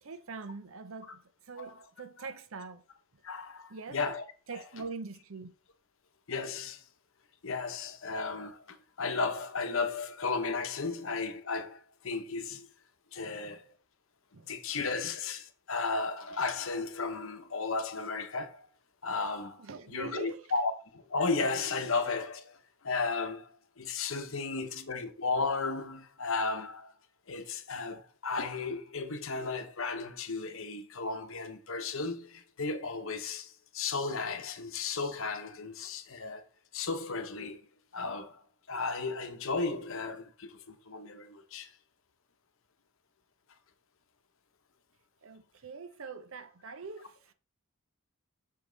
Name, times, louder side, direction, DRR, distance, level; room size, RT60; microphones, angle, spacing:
voice 1, 0.0-2.8 3.7-4.0 4.5-5.5 12.5-12.6 13.2-13.6 14.3-14.5 19.6-20.4 24.6-24.7 45.2-47.3, right 4 dB, 65° right, 0.7 m, -43 dB
voice 2, 3.2-4.2 4.5-4.6 6.3-6.9 7.4-12.7 13.1-13.8 14.4-18.7 19.0-26.9 27.3-36.5 36.7-41.7, left 4 dB, 65° left, 0.9 m, -34 dB
6.6 x 5.3 x 3.9 m
head